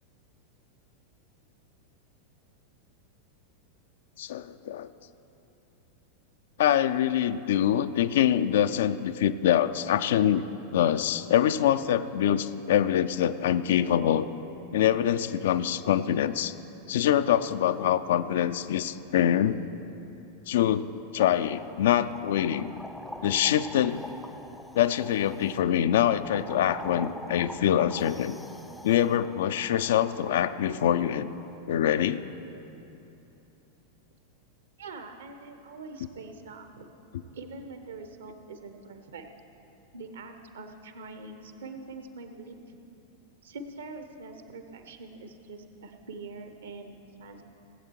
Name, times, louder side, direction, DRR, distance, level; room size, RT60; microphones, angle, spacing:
voice 1, 4.2-4.9 6.6-10.5 10.7-14.3 14.7-16.5 16.9-19.6 20.5-20.9 21.1-22.7 23.2-24.0 24.7-28.4 28.8-31.3 31.7-32.2, left 10 dB, 55° left, 12 dB, 0.4 m, -24 dB
sound 1, 21.2-31.6, left 1 dB, 5° left, 0.5 m, -45 dB
voice 2, 34.8-36.9 37.3-39.3 39.9-42.8 43.4-47.4, right 3 dB, 65° right, 7 dB, 1.0 m, -44 dB
17.5 x 8.0 x 4.5 m, 2.9 s
figure-of-eight pair, 90°, 0 cm